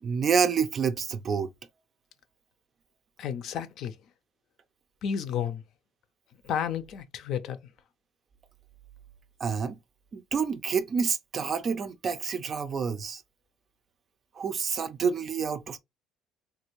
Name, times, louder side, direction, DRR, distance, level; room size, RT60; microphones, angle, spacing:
voice 1, 0.0-1.5 9.4-9.8 10.1-13.2 14.4-15.8, right 6 dB, 35° right, 0.4 m, -28 dB
voice 2, 3.2-3.9 5.0-5.6 6.4-7.6, left 8 dB, 60° left, 0.5 m, -31 dB
3.2 x 2.5 x 2.9 m
cardioid pair, 135°, 0 cm